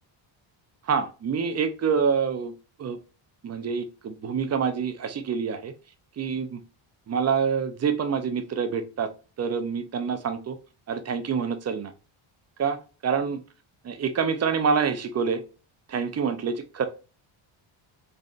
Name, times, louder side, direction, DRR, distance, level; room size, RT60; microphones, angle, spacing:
voice 1, 0.9-2.5 2.8-3.0 3.4-5.7 6.2-6.6 7.1-9.1 9.4-10.6 10.9-11.9 12.6-13.4 13.8-15.4 15.9-16.9, right 6 dB, 35° right, 8 dB, 0.5 m, -26 dB
4.0 x 3.2 x 2.4 m, 0.32 s
cardioid pair, 140°, 50 cm